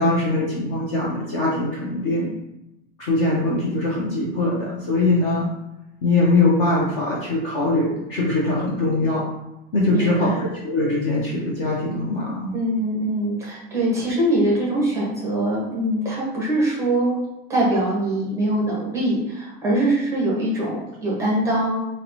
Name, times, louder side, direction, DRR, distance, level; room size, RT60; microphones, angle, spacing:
voice 1, 0.0-2.3 3.0-5.5 6.0-9.3 9.7-12.5, left 2 dB, 30° left, -5 dB, 0.4 m, -22 dB
voice 2, 9.9-10.4 12.5-17.2 17.5-21.8, right 1 dB, 10° right, -5 dB, 0.6 m, -23 dB
3.9 x 2.0 x 2.8 m, 0.92 s
supercardioid pair, 175°, 30 cm